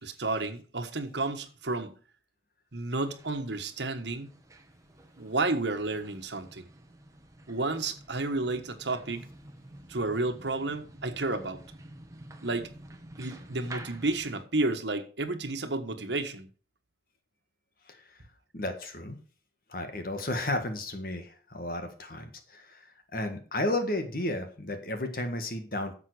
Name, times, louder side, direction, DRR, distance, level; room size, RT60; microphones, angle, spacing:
voice 1, 0.0-2.0 2.7-4.4 5.2-6.7 7.5-9.3 9.9-11.6 12.4-12.7 13.2-16.5, right 2 dB, 80° right, 1.4 m, -31 dB
sound 1, 3.0-14.4, right 1 dB, 20° right, 1.2 m, -49 dB
voice 2, 17.9-18.2 18.5-19.2 19.7-25.9, left 1 dB, 50° left, 1.7 m, -33 dB
11.0 x 7.4 x 4.9 m
head